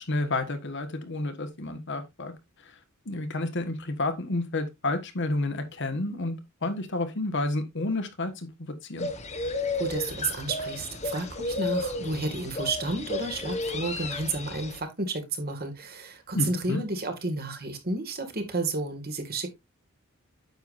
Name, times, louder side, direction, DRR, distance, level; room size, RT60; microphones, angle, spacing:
voice 1, 0.0-2.3 2.6-2.8 3.0-9.1 16.3-16.8, left 2 dB, 55° left, 1.5 m, -30 dB
sound 1, 9.0-14.8, left 2 dB, 30° left, 1.1 m, -33 dB
voice 2, 9.7-19.5, right 3 dB, 45° right, 2.1 m, -31 dB
9.2 x 7.0 x 2.6 m
head